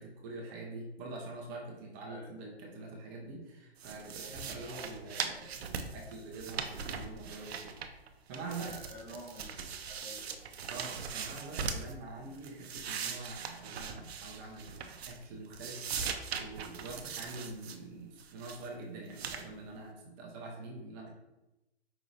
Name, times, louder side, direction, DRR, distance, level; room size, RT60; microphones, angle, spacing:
voice 1, 0.0-7.8 8.3-8.8 10.7-21.1, right 3 dB, 20° right, -1 dB, 0.5 m, -45 dB
sound 1, 3.8-8.1 8.3-11.9 12.3-15.3 15.5-17.8 18.2-18.7 19.1-19.5, right 6 dB, 70° right, 0.5 m, -40 dB
voice 2, 8.3-10.4, equal, 15° left, -3 dB, 1.0 m, -49 dB
5.0 x 2.8 x 2.6 m, 0.95 s
hypercardioid pair, 135°, 32 cm